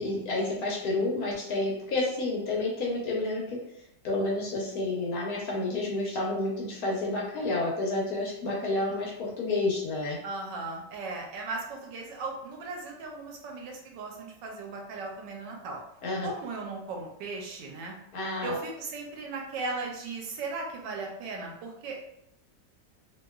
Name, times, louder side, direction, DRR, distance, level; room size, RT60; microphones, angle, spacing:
voice 1, 0.0-3.6 4.0-9.1 9.4-10.2 16.0-16.3 18.1-18.6, left 2 dB, 65° left, -2 dB, 1.1 m, -30 dB
voice 2, 10.2-15.8 16.2-17.9 18.4-22.2, right 3 dB, 90° right, 1 dB, 1.3 m, -37 dB
2.9 x 2.8 x 2.3 m, 0.80 s
omnidirectional pair, 1.9 m